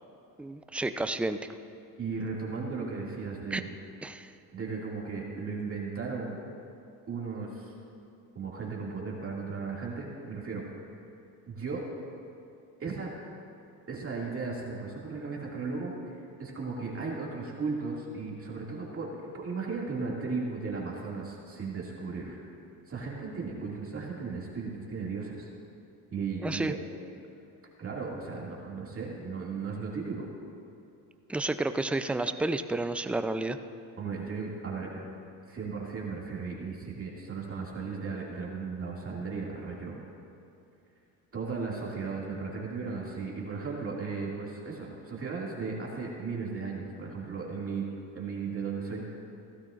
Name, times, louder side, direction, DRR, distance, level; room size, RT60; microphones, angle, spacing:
voice 1, 0.4-1.4 3.5-3.6 4.0-4.3 26.4-26.7 31.3-33.6, right 2 dB, 5° right, 10 dB, 0.3 m, -30 dB
voice 2, 2.0-3.7 4.5-6.4 7.1-7.7 8.3-10.6 11.5-11.8 12.8-13.1 13.9-15.9 16.4-22.4 22.9-25.5 26.1-26.8 27.8-30.2 34.0-35.1 35.5-40.0 41.3-47.8 48.1-49.0, right 4 dB, 35° right, -3 dB, 2.3 m, -36 dB
16.0 x 13.0 x 2.5 m, 2.6 s
supercardioid pair, 85°, 41 cm